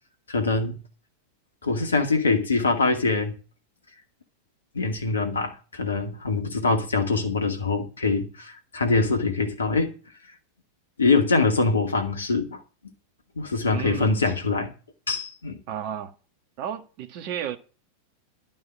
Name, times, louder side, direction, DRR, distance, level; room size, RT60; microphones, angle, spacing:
voice 1, 0.3-0.8 1.6-3.4 4.7-9.9 11.0-12.6 13.4-14.7 15.1-15.6, left 3 dB, 70° left, 2.3 m, -24 dB
voice 2, 13.7-14.2 15.7-16.1 16.6-17.6, right 10 dB, 45° right, 1.6 m, -32 dB
12.0 x 5.5 x 8.6 m
figure-of-eight pair, 90°, 0 cm